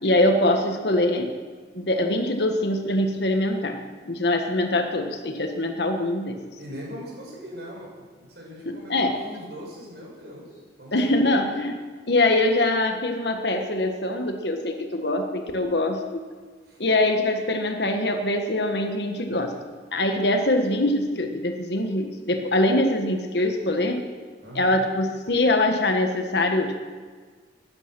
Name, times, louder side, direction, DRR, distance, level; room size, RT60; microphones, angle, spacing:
voice 1, 0.0-1.3 1.7-6.4 8.6-9.2 10.9-11.7 12.1-16.2 16.8-19.5 19.9-24.1 24.5-26.8, left 1 dB, 75° left, 5 dB, 1.4 m, -23 dB
voice 2, 6.6-11.5 16.6-16.8 24.4-24.8, equal, 70° right, -2 dB, 6.1 m, -40 dB
16.5 x 11.5 x 6.1 m, 1.5 s
head